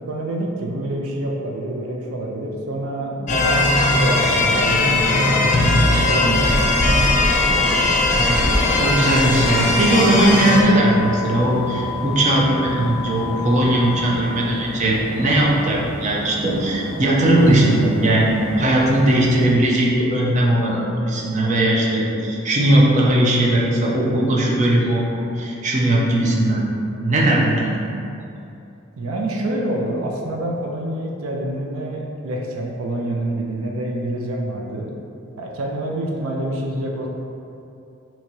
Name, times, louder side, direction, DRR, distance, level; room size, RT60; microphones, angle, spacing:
voice 1, 0.1-5.6 6.1-6.8 29.0-34.9 35.4-37.1, right 1 dB, 85° right, -1 dB, 0.5 m, -26 dB
sound 1, 3.3-10.6, left 2 dB, 35° left, 0.4 m, -18 dB
sound 2, 3.5-14.1, left 8 dB, 15° left, 0.9 m, -31 dB
sound 3, 3.8-19.5, equal, 60° right, 1.1 m, -32 dB
voice 2, 8.1-25.0 25.3-26.6 27.0-27.9, right 1 dB, 35° right, -3 dB, 0.5 m, -18 dB
2.9 x 2.7 x 4.4 m, 2.7 s
head